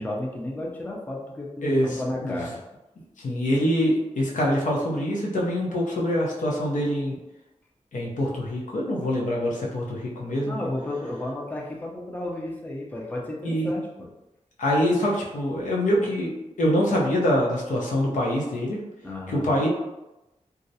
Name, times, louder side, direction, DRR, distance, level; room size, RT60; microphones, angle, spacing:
voice 1, 0.0-2.6 10.4-14.1 19.0-19.6, left 1 dB, 15° left, -2 dB, 0.4 m, -33 dB
voice 2, 3.2-7.2 7.9-10.6 13.4-13.7 14.6-16.3 16.6-18.8 19.4-19.7, equal, 90° left, -3 dB, 0.6 m, -24 dB
2.3 x 2.0 x 2.7 m, 0.98 s
wide cardioid pair, 120°, 13 cm